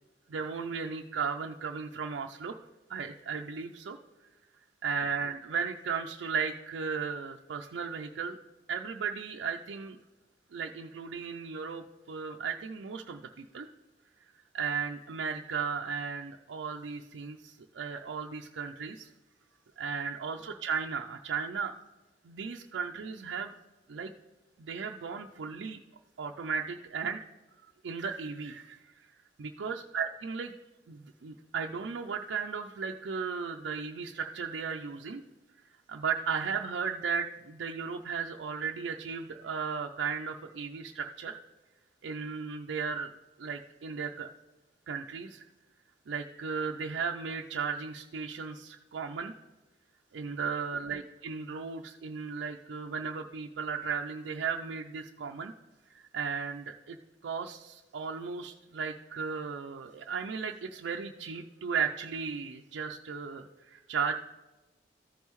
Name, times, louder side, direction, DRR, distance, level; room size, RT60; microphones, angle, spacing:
voice 1, 0.3-2.6 2.9-4.3 4.8-8.4 8.7-10.0 10.5-13.7 14.5-19.1 19.8-21.7 22.2-23.5 23.9-24.1 24.6-25.8 26.2-27.3 27.8-29.1 29.4-30.5 30.9-35.2 35.9-41.4 42.0-43.1 43.4-44.3 44.9-45.4 46.1-49.3 50.1-55.5 55.9-57.0 57.2-64.1, right 6 dB, 80° right, 2 dB, 0.4 m, -35 dB
14.0 x 5.4 x 3.1 m, 1.1 s
head